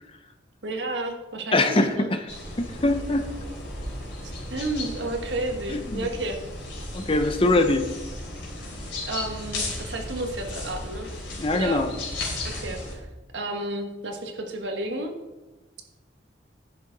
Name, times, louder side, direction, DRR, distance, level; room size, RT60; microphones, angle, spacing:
voice 1, 0.6-2.1 4.2-6.4 9.1-11.1 11.5-11.8 12.4-13.1 13.3-15.1, right 2 dB, 80° right, 3 dB, 1.4 m, -32 dB
voice 2, 1.5-2.2 2.6-3.3 5.7-6.1 6.9-7.9 11.4-11.9, left 2 dB, 30° left, 7 dB, 0.7 m, -23 dB
sound 1, 2.3-13.0, left 1 dB, 75° left, 3.4 m, -35 dB
10.5 x 6.8 x 3.9 m, 1.1 s
head